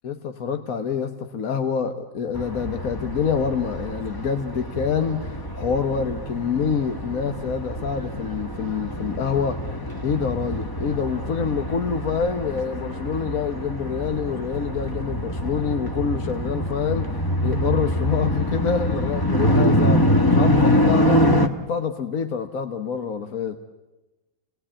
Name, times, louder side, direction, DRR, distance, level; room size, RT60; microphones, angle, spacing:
voice 1, 0.0-9.7 10.0-17.1 17.4-23.6, left 6 dB, 60° left, 7 dB, 1.4 m, -26 dB
sound 1, 2.3-21.5, equal, 15° left, 1.1 m, -25 dB
30.0 x 19.0 x 8.7 m, 1.1 s
omnidirectional pair, 1.7 m